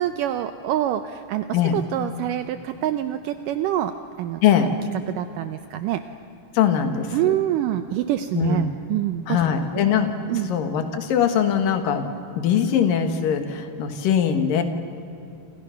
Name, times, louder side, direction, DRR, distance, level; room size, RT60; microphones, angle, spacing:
voice 1, 0.0-4.4 5.1-6.0 7.1-9.4 10.3-10.5, right 12 dB, 85° right, 9 dB, 1.9 m, -26 dB
voice 2, 6.5-7.3 8.3-8.7 9.3-12.1 12.4-14.6, left 8 dB, 60° left, 6 dB, 3.1 m, -21 dB
29.5 x 27.5 x 5.9 m, 2.6 s
omnidirectional pair, 4.7 m